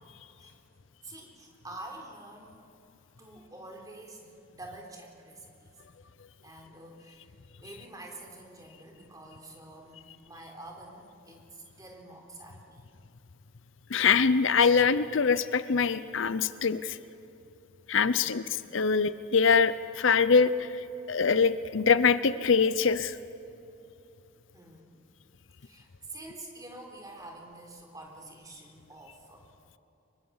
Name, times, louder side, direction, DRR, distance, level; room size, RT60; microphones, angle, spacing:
voice 1, 1.0-2.6 3.2-5.7 6.4-7.3 7.6-12.8 18.0-18.4 24.5-25.0 25.6-29.5, right 2 dB, 15° right, 1 dB, 3.8 m, -47 dB
voice 2, 13.9-17.0 17.9-23.2, left 5 dB, 65° left, 14 dB, 0.6 m, -24 dB
25.0 x 23.0 x 7.2 m, 2.9 s
head